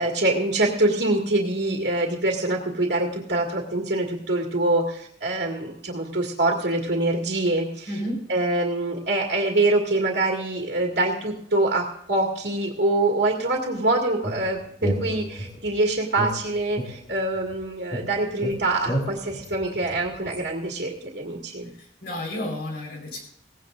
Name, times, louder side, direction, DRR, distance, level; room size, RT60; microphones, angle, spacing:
voice 1, 0.0-8.0 8.3-21.7, right 2 dB, 65° right, -1 dB, 2.1 m, -25 dB
voice 2, 7.9-8.2 22.0-23.2, left 1 dB, 60° left, 1 dB, 4.5 m, -31 dB
sound 1, 14.2-15.7 16.2-17.6 17.9-20.4, equal, 40° left, 2.3 m, -32 dB
18.0 x 16.0 x 2.6 m, 0.67 s
head